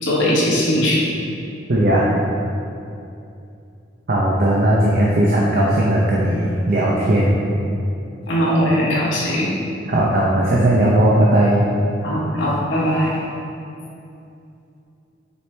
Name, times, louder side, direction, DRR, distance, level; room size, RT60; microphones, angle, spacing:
voice 1, 0.0-1.1 8.3-9.6 12.0-13.2, equal, 80° left, -6 dB, 1.5 m, -19 dB
voice 2, 1.7-2.1 4.1-7.4 9.9-11.6, right 1 dB, 50° right, -4 dB, 0.7 m, -17 dB
6.9 x 5.0 x 3.3 m, 2.6 s
head